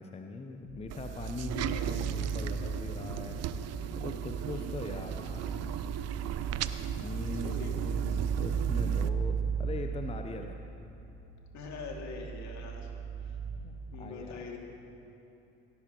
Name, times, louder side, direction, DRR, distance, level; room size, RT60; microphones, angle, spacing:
voice 1, 0.0-5.8 6.9-10.6 13.6-14.4, left 3 dB, 20° left, 4 dB, 0.8 m, -41 dB
sound 1, 0.6-13.6, right 6 dB, 70° right, 2.7 m, -36 dB
sound 2, 0.9-9.1, right 9 dB, 50° right, 0.6 m, -37 dB
voice 2, 7.4-7.7 11.5-12.9 13.2-13.4 13.9-14.6, left 5 dB, 55° left, 0 dB, 2.5 m, -43 dB
18.0 x 17.0 x 3.0 m, 3.0 s
hypercardioid pair, 60°, 34 cm